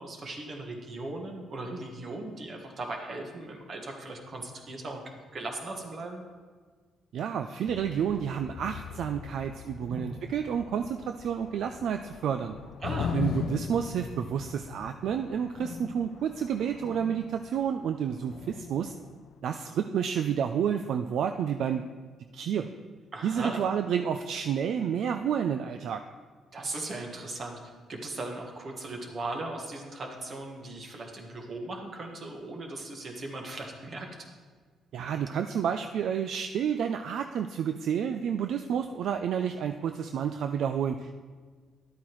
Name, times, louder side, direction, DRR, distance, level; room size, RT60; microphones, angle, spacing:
voice 1, 0.0-6.2 9.8-10.1 12.8-13.1 23.1-23.6 26.5-27.6 27.9-34.1, right 2 dB, 45° right, 2 dB, 1.5 m, -38 dB
voice 2, 7.1-12.6 13.1-18.9 19.4-21.8 22.3-22.7 23.2-26.0 34.9-41.1, right 8 dB, 70° right, 7 dB, 0.3 m, -30 dB
sound 1, 7.7-19.4, left 7 dB, 75° left, 0.4 m, -40 dB
11.5 x 8.4 x 3.1 m, 1.5 s
cardioid pair, 90°, 0 cm